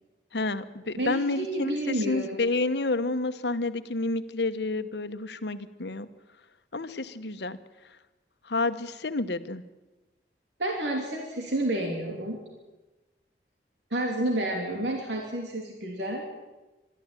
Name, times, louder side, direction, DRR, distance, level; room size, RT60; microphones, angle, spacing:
voice 1, 0.3-6.1 6.7-7.6 8.4-9.6, left 2 dB, 80° left, 11 dB, 1.1 m, -29 dB
voice 2, 1.0-2.4 10.6-12.4 13.9-16.2, right 1 dB, 90° right, 1 dB, 3.0 m, -30 dB
23.5 x 13.0 x 9.0 m, 1.1 s
head